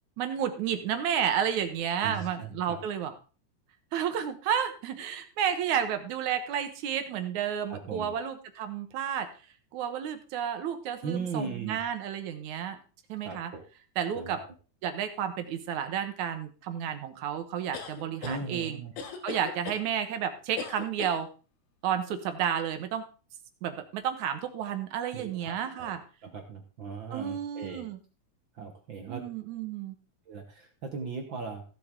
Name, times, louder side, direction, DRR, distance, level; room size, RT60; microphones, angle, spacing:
voice 1, 0.2-3.1 3.9-9.3 9.7-12.8 13.1-13.5 14.0-14.4 14.8-18.8 19.2-21.3 21.8-23.0 23.6-26.0 27.1-28.0 29.1-30.0, right 8 dB, 70° right, 8 dB, 2.5 m, -31 dB
voice 2, 2.0-2.8 7.7-8.2 11.0-11.8 13.2-13.6 14.1-14.4 18.2-18.9 25.1-26.0 26.2-27.9 28.5-29.2 30.3-31.6, right 5 dB, 55° right, 4 dB, 1.5 m, -38 dB
sound 1, 17.7-18.4 19.0-19.8 20.6-21.2, left 5 dB, 90° left, 3.0 m, -38 dB
15.5 x 7.6 x 3.7 m, 0.35 s
omnidirectional pair, 3.5 m